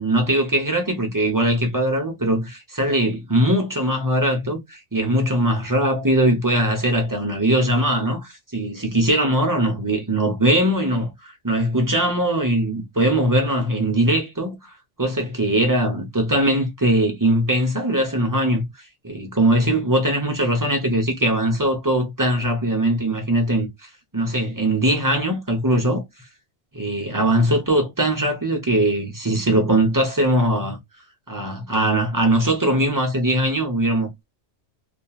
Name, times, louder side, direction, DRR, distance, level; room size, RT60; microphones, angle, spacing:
voice 1, 0.0-14.7 15.0-18.7 19.0-23.7 24.1-26.0 26.7-30.8 31.3-34.2, right 1 dB, 20° right, 0.7 m, -21 dB
2.9 x 2.4 x 2.3 m
omnidirectional pair, 1.2 m